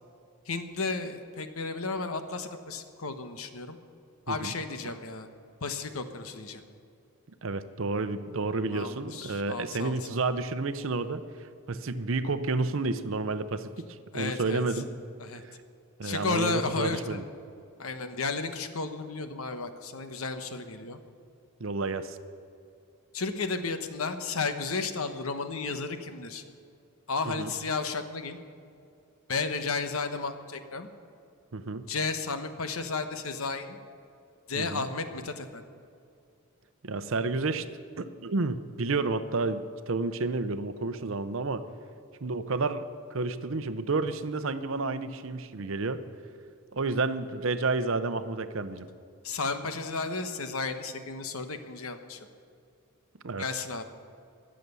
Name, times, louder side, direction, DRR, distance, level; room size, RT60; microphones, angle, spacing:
voice 1, 0.5-3.8 4.3-5.3 5.6-6.6 8.7-10.2 14.1-14.8 15.2-15.4 16.0-17.2 17.8-21.0 23.1-26.4 27.1-28.4 29.3-30.9 31.9-33.8 34.5-35.6 49.2-52.2 53.4-53.8, left 4 dB, 75° left, 8 dB, 1.1 m, -33 dB
voice 2, 7.4-13.8 14.1-14.9 16.0-17.2 21.6-22.2 27.2-27.5 31.5-31.8 34.5-34.9 36.8-37.7 38.0-41.6 42.2-46.0 46.7-48.9 53.2-53.5, right 3 dB, 60° right, 11 dB, 0.7 m, -30 dB
22.0 x 7.7 x 6.9 m, 2.5 s
head